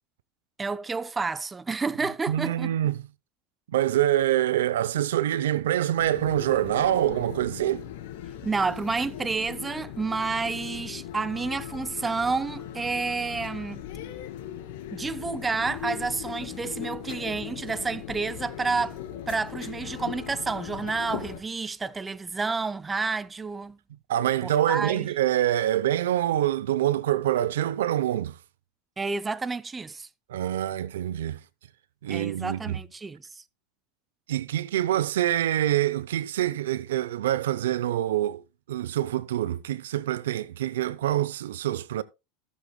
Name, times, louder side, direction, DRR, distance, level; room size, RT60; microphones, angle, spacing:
voice 1, 0.6-2.7 8.4-13.8 14.9-19.0 19.3-23.8 24.4-25.1 29.0-30.1 32.1-33.4, right 4 dB, 15° right, 0.4 m, -30 dB
voice 2, 2.3-3.0 3.7-7.8 24.1-28.4 30.3-31.4 32.0-32.8 34.3-38.4 38.7-42.0, right 12 dB, 90° right, 0.6 m, -25 dB
sound 1, 6.0-21.4, left 11 dB, 70° left, 2.3 m, -39 dB
17.0 x 7.4 x 2.2 m
supercardioid pair, 125°, 0 cm